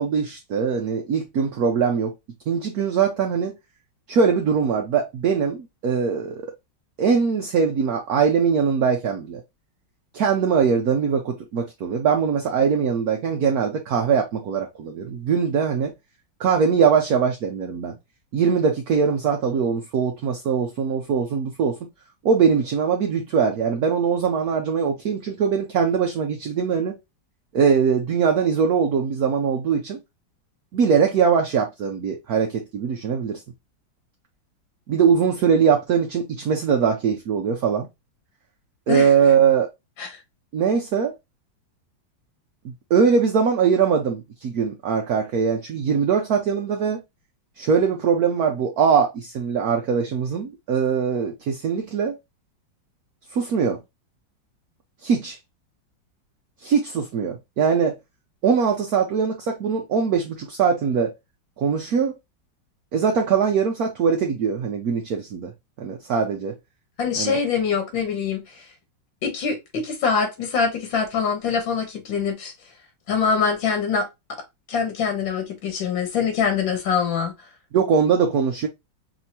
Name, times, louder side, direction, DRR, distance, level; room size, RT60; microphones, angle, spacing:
voice 1, 0.0-2.1 2.5-3.5 4.1-6.5 7.0-9.4 10.1-15.9 16.4-18.0 18.3-21.9 22.2-27.0 27.5-30.0 30.7-33.4 34.9-37.9 38.9-39.7 40.5-41.1 42.9-47.0 47.6-52.2 53.3-53.8 55.0-55.4 56.6-58.0 58.4-61.1 61.6-62.1 62.9-65.5 65.8-66.5 67.2-67.4 77.7-78.7, right 6 dB, 60° right, 1.1 m, -21 dB
voice 2, 67.0-68.7 69.2-72.5 73.1-74.1 74.7-77.3, left 6 dB, 85° left, 2.0 m, -24 dB
5.6 x 2.8 x 2.8 m
omnidirectional pair, 2.0 m